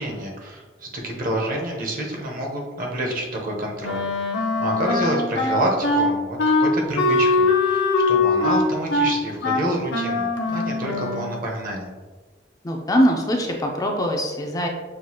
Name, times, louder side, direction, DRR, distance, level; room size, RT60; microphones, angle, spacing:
voice 1, 0.0-4.1 4.3-11.9, right 1 dB, 50° right, 0 dB, 0.8 m, -28 dB
Wind instrument woodwind instrument, 3.8-11.4, left 3 dB, 65° left, 0.6 m, -21 dB
voice 2, 12.6-14.7, equal, 20° left, 1 dB, 0.4 m, -22 dB
6.1 x 2.4 x 2.8 m, 1.3 s
head